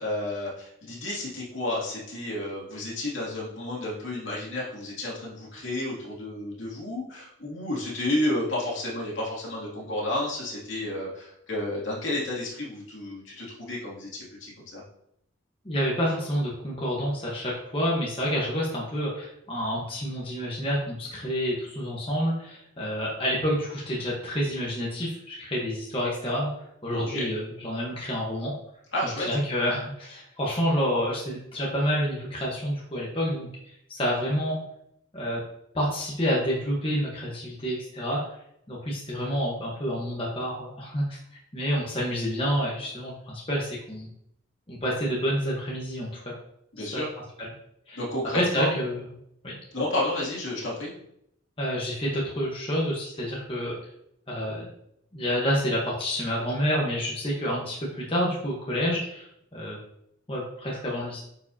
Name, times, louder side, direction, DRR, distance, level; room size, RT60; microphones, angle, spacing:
voice 1, 0.0-14.8 26.9-27.3 28.9-29.3 46.7-47.1 48.0-48.8 49.7-50.9, left 1 dB, 65° left, -5 dB, 2.6 m, -31 dB
voice 2, 15.6-26.5 26.8-28.5 29.2-33.5 33.9-34.6 35.1-35.4 35.7-38.2 38.7-41.2 41.5-44.1 44.7-46.3 46.9-47.0 47.4-47.5 47.9-48.0 48.3-49.1 49.4-49.5 51.6-53.7 54.3-54.7 55.1-59.8 60.3-61.2, equal, 25° left, -5 dB, 1.2 m, -28 dB
9.5 x 4.8 x 2.8 m, 0.75 s
head